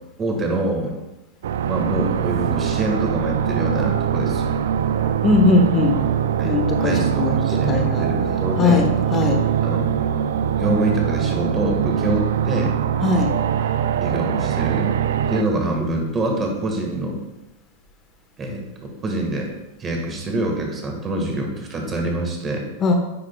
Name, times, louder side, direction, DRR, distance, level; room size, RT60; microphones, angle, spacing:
voice 1, 0.2-0.9 1.7-4.5 6.4-8.9 9.6-9.9 10.5-12.7 14.0-14.9 15.3-17.2 18.4-19.5 19.8-22.7, right 1 dB, 25° right, 1 dB, 1.5 m, -25 dB
sound 1, 1.4-15.4, right 9 dB, 75° right, 0.3 m, -22 dB
voice 2, 5.2-6.0 6.4-8.1 8.6-9.4 13.0-13.3 13.6-13.7 22.8-22.9, left 3 dB, 30° left, 4 dB, 1.1 m, -19 dB
9.7 x 4.8 x 2.3 m, 0.98 s
hypercardioid pair, 120°, 0 cm